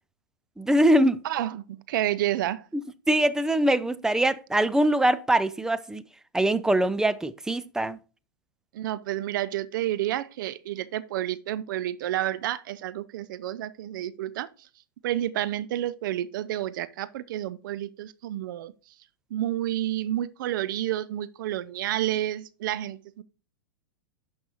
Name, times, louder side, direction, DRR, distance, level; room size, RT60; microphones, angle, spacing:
voice 1, 0.6-1.2 2.7-2.8 3.1-6.0 6.3-8.0, right 1 dB, 5° right, 0.4 m, -23 dB
voice 2, 1.2-2.6 8.7-14.5 15.0-18.7 19.3-23.2, right 13 dB, 65° right, 0.5 m, -30 dB
11.5 x 5.3 x 3.0 m
hypercardioid pair, 115°, 12 cm